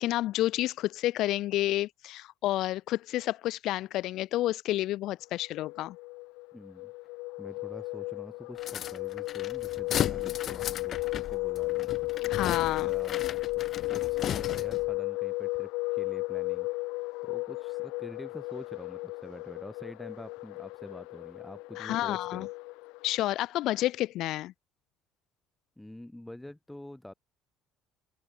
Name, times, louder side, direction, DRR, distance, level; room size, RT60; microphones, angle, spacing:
voice 1, 0.0-6.0 12.3-12.9 21.8-22.5 23.0-24.5, left 15 dB, 55° left, 2.2 m, -30 dB
sound 1, 5.4-23.2, left 24 dB, 85° left, 6.7 m, -34 dB
voice 2, 6.5-11.9 12.7-13.3 13.5-22.5 25.8-27.1, left 1 dB, 5° left, 7.0 m, -47 dB
sound 2, 8.6-14.9, left 10 dB, 35° left, 6.7 m, -36 dB
open air
cardioid pair, 170°, 0 cm